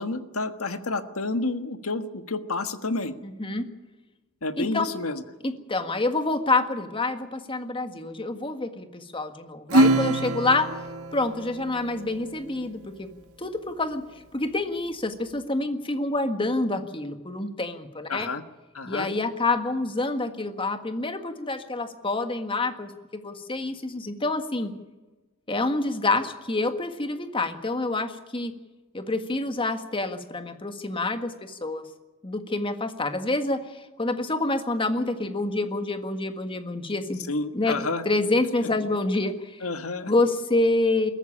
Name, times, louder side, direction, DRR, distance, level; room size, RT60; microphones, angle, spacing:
voice 1, 0.0-3.1 4.4-5.2 18.1-18.4 18.7-19.1 37.3-38.0 39.6-40.1, left 3 dB, 75° left, 9 dB, 1.5 m, -30 dB
voice 2, 3.2-3.6 4.6-4.9 5.4-10.7 11.1-13.1 13.4-14.0 14.3-18.3 18.9-24.7 25.5-28.5 28.9-31.8 32.2-37.2 37.5-39.6 40.1-41.1, left 2 dB, 25° left, 7 dB, 1.7 m, -27 dB
Acoustic guitar / Strum, 9.7-12.6, right 2 dB, 85° right, 1.7 m, -24 dB
22.0 x 14.0 x 10.0 m, 1.1 s
head